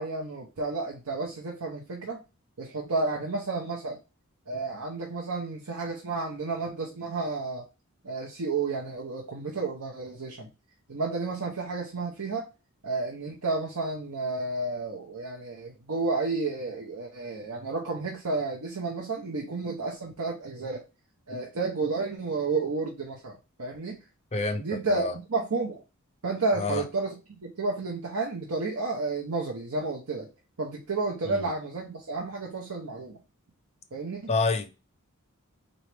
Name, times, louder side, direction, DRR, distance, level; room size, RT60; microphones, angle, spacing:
voice 1, 0.0-2.2 2.6-4.0 4.5-7.6 8.0-10.5 10.9-12.5 12.8-20.8 21.3-24.0 24.6-25.8 26.2-27.2 27.4-30.3 30.6-33.2 33.9-34.3, right 3 dB, 80° right, 0.8 m, -31 dB
voice 2, 24.3-25.2 26.6-26.8 31.3-31.5 34.3-34.8, left 3 dB, 30° left, 0.6 m, -28 dB
4.1 x 3.1 x 3.2 m
head